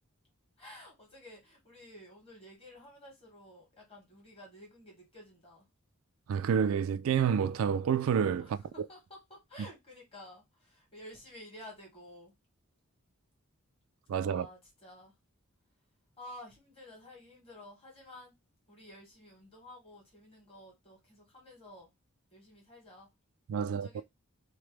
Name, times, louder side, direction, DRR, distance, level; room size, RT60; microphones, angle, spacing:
voice 1, 0.6-5.7 8.4-12.3 14.2-15.1 16.2-18.4 18.7-21.9 22.3-23.1 23.6-24.0, left 1 dB, 25° left, 1.5 m, -52 dB
voice 2, 6.3-8.5 14.1-14.5 23.5-24.0, right 7 dB, 75° right, 0.3 m, -28 dB
2.9 x 2.1 x 3.2 m
head